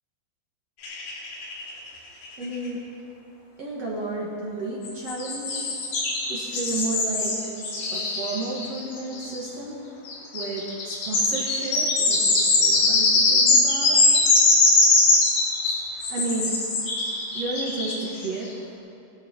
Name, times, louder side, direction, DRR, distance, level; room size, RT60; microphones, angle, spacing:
sound 1, 0.8-1.9 2.2-2.3 2.5-2.6 4.9-9.4 10.1-18.3, left 3 dB, 85° left, 5.0 m, -21 dB
voice 1, 2.4-2.8 3.6-5.7 6.3-7.5 7.9-9.8 10.3-14.0 15.9-16.5 17.3-18.5, right 2 dB, 50° right, -5 dB, 2.2 m, -32 dB
21.0 x 12.0 x 4.5 m, 2.7 s
omnidirectional pair, 5.0 m